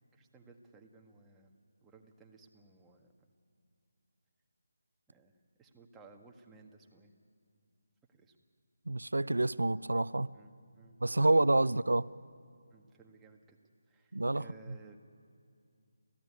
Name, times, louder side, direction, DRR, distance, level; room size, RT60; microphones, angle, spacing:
voice 1, 0.0-1.5 1.8-3.3 5.1-7.1 8.1-8.4 10.3-11.8 12.7-13.6 13.9-15.0, right 4 dB, 10° right, 1.6 m, -58 dB
voice 2, 8.9-10.3 11.0-12.0 14.1-14.4, right 2 dB, 80° right, 0.5 m, -28 dB
29.5 x 15.0 x 9.7 m
figure-of-eight pair, 155°, 0 cm